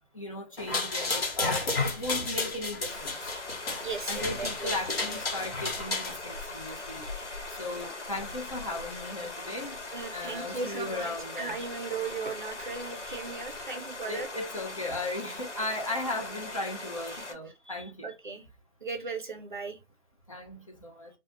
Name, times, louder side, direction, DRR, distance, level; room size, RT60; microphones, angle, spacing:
voice 1, 0.1-3.3 4.1-9.8 10.1-11.6 14.0-18.1 20.3-21.1, left 2 dB, 30° left, 0.6 m, -37 dB
sound 1, 0.6-6.1, left 3 dB, 60° left, 1.1 m, -32 dB
sound 2, 2.9-17.3, left 2 dB, 90° left, 1.0 m, -40 dB
voice 2, 3.6-4.8 5.1-5.2 9.9-14.3 17.1-17.2 18.0-18.5 18.8-19.8, right 4 dB, 45° right, 0.5 m, -37 dB
2.3 x 2.2 x 2.9 m
figure-of-eight pair, 155°, 35 cm